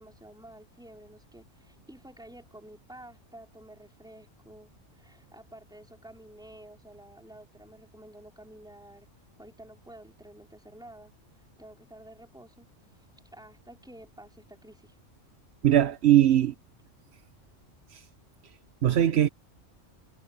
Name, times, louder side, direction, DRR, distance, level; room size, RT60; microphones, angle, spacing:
voice 1, 0.0-9.1 9.4-11.1 11.6-12.7 12.9-15.0, right 1 dB, 5° right, 4.6 m, -51 dB
voice 2, 15.6-16.5 17.9-18.1 18.4-19.3, right 11 dB, 60° right, 1.1 m, -22 dB
omnidirectional pair, 1.3 m